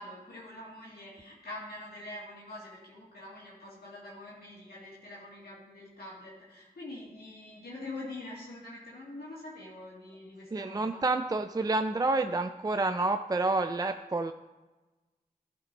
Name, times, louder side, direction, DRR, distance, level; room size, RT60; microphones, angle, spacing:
voice 1, 0.0-11.0, left 2 dB, 85° left, -6 dB, 2.0 m, -45 dB
voice 2, 10.5-14.3, right 2 dB, 25° right, 8 dB, 0.4 m, -29 dB
11.5 x 5.1 x 4.3 m, 1.1 s
cardioid pair, 45°, 16 cm